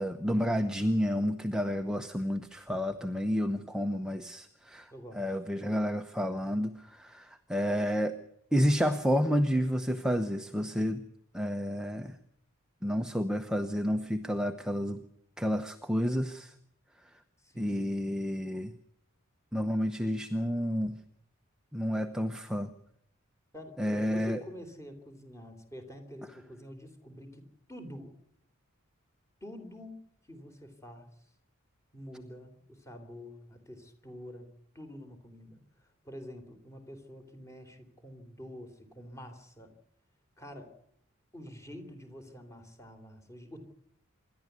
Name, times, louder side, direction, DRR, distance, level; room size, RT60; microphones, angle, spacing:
voice 1, 0.0-8.2 8.5-11.0 11.3-12.2 12.8-15.0 15.4-16.5 17.6-18.7 19.5-21.0 21.7-22.7 23.8-24.4, equal, 5° right, 6 dB, 0.9 m, -30 dB
voice 2, 4.9-5.3 17.4-18.2 23.5-28.1 29.4-30.0 30.3-31.1 31.9-34.5 34.7-39.7 40.4-40.7 41.3-43.6, equal, 15° left, 6 dB, 3.5 m, -47 dB
26.5 x 12.0 x 8.2 m, 0.71 s
head